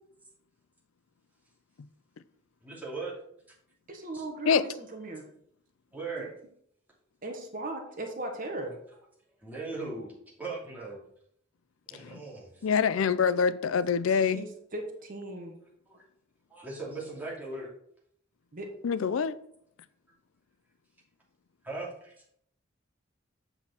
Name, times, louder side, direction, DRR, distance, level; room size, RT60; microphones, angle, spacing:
voice 1, 2.6-3.1 4.1-4.2 5.9-6.3 9.4-10.1 10.4-11.0 11.9-12.6 16.5-17.7 21.6-22.1, right 3 dB, 10° right, 2.6 m, -38 dB
voice 2, 3.9-5.2 6.2-6.3 7.2-8.8 14.1-15.5 18.5-18.7, right 2 dB, 45° right, 1.2 m, -38 dB
voice 3, 12.6-14.4 18.8-19.3, left 6 dB, 90° left, 0.4 m, -25 dB
8.0 x 5.7 x 4.4 m
head